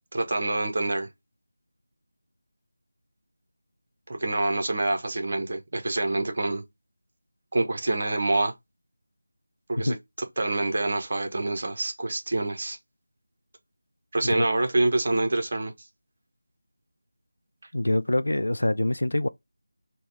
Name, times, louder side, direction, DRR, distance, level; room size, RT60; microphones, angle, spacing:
voice 1, 0.1-1.1 4.1-6.6 7.5-8.5 9.7-10.0 10.4-12.8 14.1-15.7, right 2 dB, 40° right, 1.0 m, -26 dB
voice 2, 17.7-19.3, left 1 dB, 65° left, 0.4 m, -25 dB
3.9 x 2.3 x 3.3 m
figure-of-eight pair, 165°, 0 cm